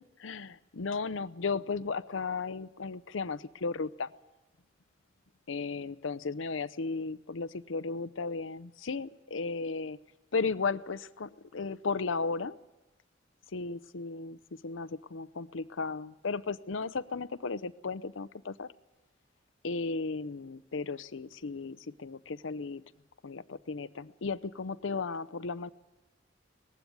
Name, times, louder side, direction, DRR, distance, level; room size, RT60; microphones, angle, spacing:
voice 1, 0.0-4.1 5.5-10.0 10.3-12.6 13.5-14.4 14.6-18.7 19.6-22.8 23.2-25.7, left 4 dB, 85° left, 16 dB, 0.7 m, -35 dB
20.0 x 15.5 x 9.4 m, 1.0 s
head